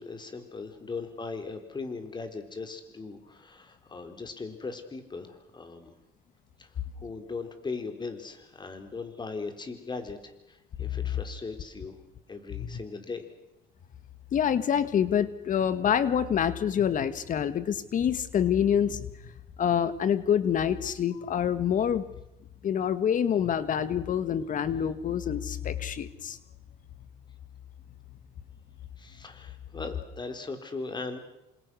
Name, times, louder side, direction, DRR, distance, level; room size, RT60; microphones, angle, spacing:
voice 1, 0.0-5.9 6.6-6.7 7.0-12.0 12.3-13.2 29.0-31.2, left 4 dB, 25° left, 7 dB, 4.4 m, -39 dB
voice 2, 14.3-19.1 19.6-22.0 22.6-26.4, left 8 dB, 50° left, 13 dB, 1.9 m, -26 dB
28.0 x 27.0 x 6.5 m, 0.86 s
cardioid pair, 110°, 17 cm